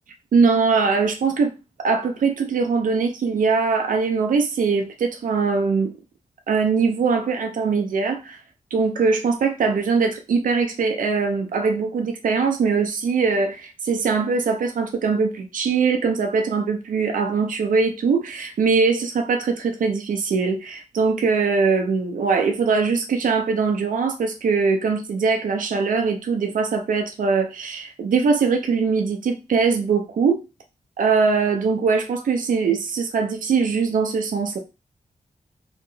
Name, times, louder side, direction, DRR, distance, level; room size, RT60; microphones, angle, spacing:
voice 1, 0.3-1.5 1.8-5.9 6.5-8.4 8.7-30.4 31.0-34.6, right 5 dB, 85° right, 0.4 m, -21 dB
2.9 x 2.7 x 2.6 m
wide cardioid pair, 170°, 14 cm